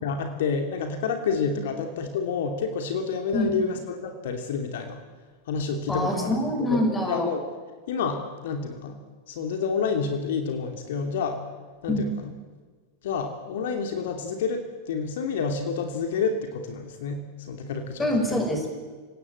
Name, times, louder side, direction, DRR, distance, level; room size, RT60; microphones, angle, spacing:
voice 1, 0.0-5.0 5.5-6.3 6.7-6.8 7.1-7.4 7.9-9.0 9.3-11.4 11.8-12.1 13.0-18.5, left 5 dB, 55° left, 5 dB, 2.8 m, -29 dB
voice 2, 5.9-7.3 11.9-12.2 18.0-18.7, equal, 10° left, 4 dB, 5.9 m, -25 dB
28.5 x 18.0 x 8.2 m, 1.4 s
figure-of-eight pair, 90°, 0 cm